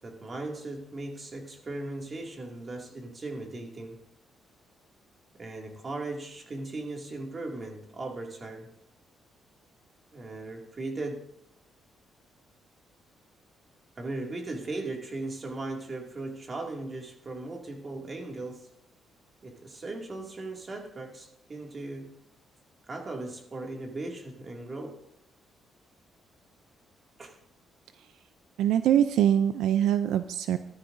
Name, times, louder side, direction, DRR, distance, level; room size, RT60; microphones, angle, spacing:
voice 1, 0.0-4.0 5.3-8.7 10.1-11.3 14.0-18.7 19.4-22.1 22.9-25.0 27.2-27.4, right 2 dB, 35° right, 1 dB, 2.3 m, -38 dB
voice 2, 28.6-30.6, right 10 dB, 85° right, 11 dB, 0.4 m, -23 dB
15.0 x 12.5 x 2.6 m, 0.77 s
cardioid pair, 90°, 0 cm